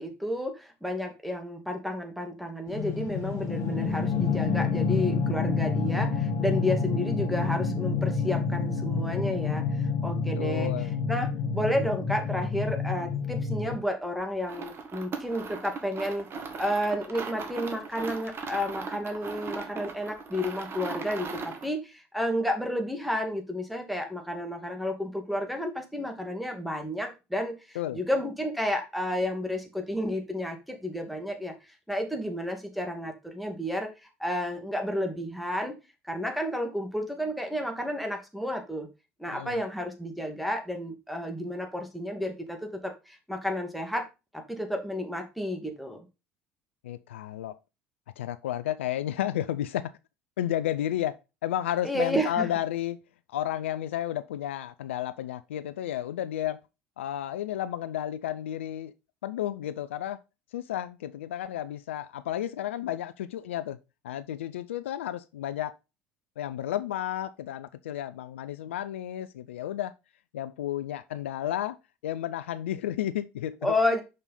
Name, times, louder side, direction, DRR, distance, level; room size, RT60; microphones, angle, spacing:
voice 1, 0.0-10.7 11.1-16.3 16.6-35.7 36.0-38.9 39.2-44.1 44.3-46.1 51.8-52.5 73.6-74.0, left 1 dB, ahead, 2.2 m, -31 dB
sound 1, 2.7-13.8, left 5 dB, 50° left, 1.7 m, -28 dB
voice 2, 10.4-10.9 27.8-28.0 39.3-39.6 46.8-47.6 48.2-49.9 50.4-51.2 51.4-53.0 53.3-56.6 57.0-58.9 59.2-60.2 60.5-63.8 64.0-65.7 66.4-69.9 70.3-71.8 72.0-73.8, left 12 dB, 75° left, 0.4 m, -32 dB
sound 2, 14.4-21.7, right 5 dB, 35° right, 1.6 m, -38 dB
6.3 x 5.4 x 4.1 m
figure-of-eight pair, 60°, 7 cm